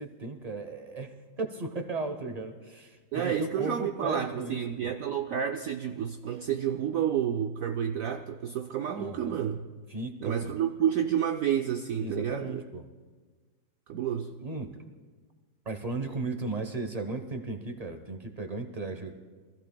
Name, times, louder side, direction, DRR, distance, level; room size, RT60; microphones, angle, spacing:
voice 1, 0.0-4.9 8.9-9.4 9.9-10.5 12.0-12.8 14.4-14.7 15.6-19.1, right 3 dB, 40° right, 6 dB, 0.5 m, -36 dB
voice 2, 3.1-9.6 10.2-12.6 13.9-14.3, right 9 dB, 80° right, 5 dB, 0.7 m, -30 dB
25.0 x 15.0 x 2.2 m, 1.4 s
omnidirectional pair, 2.1 m